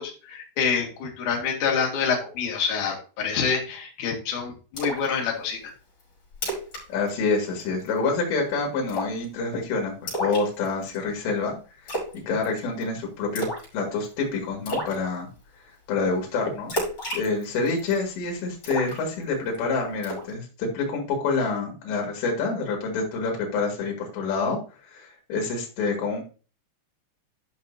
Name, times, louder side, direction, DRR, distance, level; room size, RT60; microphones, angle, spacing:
voice 1, 0.0-5.7, left 6 dB, 50° left, -1 dB, 3.1 m, -27 dB
Splash splatter, 4.8-5.1 5.5-5.6 6.0-6.1 6.3-6.8 7.1-7.3 7.6-8.0 8.9-9.3 10.1-11.0 11.9-12.2 12.4-12.8 13.4-13.7 14.0-14.1 14.7-15.0 16.7-18.0 18.6-19.6 20.0-20.3, equal, 35° left, 6.0 m, -31 dB
voice 2, 6.9-11.5 11.9-12.0 12.3-13.5 13.7-15.3 15.9-16.7 17.1-24.6 24.9-26.2, left 4 dB, 75° left, 0 dB, 4.2 m, -27 dB
13.0 x 6.0 x 2.7 m, 0.35 s
omnidirectional pair, 5.1 m